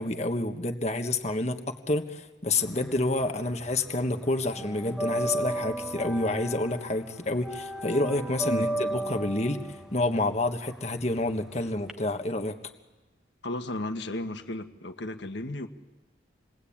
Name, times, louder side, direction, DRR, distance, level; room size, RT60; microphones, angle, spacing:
voice 1, 0.0-9.6 9.9-12.6, left 2 dB, 35° left, 5 dB, 1.5 m, -28 dB
sound 1, 2.6-3.8 4.0-11.9, right 1 dB, 5° right, 0.9 m, -34 dB
voice 2, 13.4-15.7, left 1 dB, 75° left, 7 dB, 1.5 m, -34 dB
28.5 x 21.5 x 8.7 m, 1.2 s
head